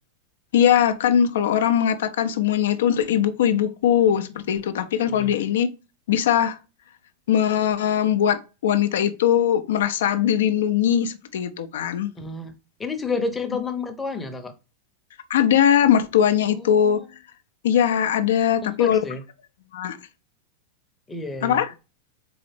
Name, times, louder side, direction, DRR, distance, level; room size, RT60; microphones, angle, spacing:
voice 1, 0.5-5.7 6.1-6.6 7.3-12.1 15.3-17.0 17.6-19.0 19.7-20.0 21.4-21.7, left 9 dB, 60° left, 0.5 m, -20 dB
voice 2, 12.2-12.5 12.8-14.5 16.5-17.1 18.6-19.2 21.1-21.6, left 3 dB, 10° left, 0.8 m, -30 dB
4.1 x 3.8 x 3.3 m
figure-of-eight pair, 90°, 0 cm